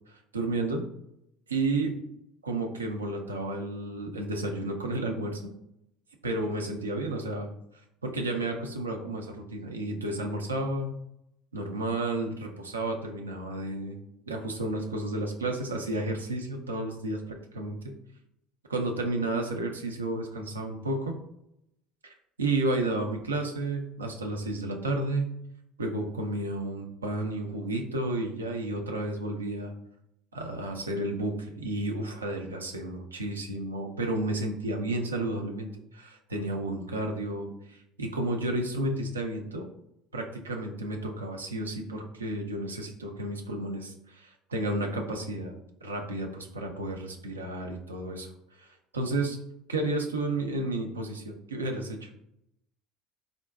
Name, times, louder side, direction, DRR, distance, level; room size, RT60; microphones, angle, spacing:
voice 1, 0.1-0.8 1.5-1.9 2.4-5.5 6.2-7.5 8.0-10.9 11.5-14.0 14.3-17.9 18.7-21.1 22.0-25.3 25.8-29.7 30.3-39.7 40.1-49.4 49.7-52.1, right 2 dB, 90° right, 3 dB, 0.4 m, -32 dB
3.6 x 2.2 x 2.2 m, 0.79 s
hypercardioid pair, 65°, 0 cm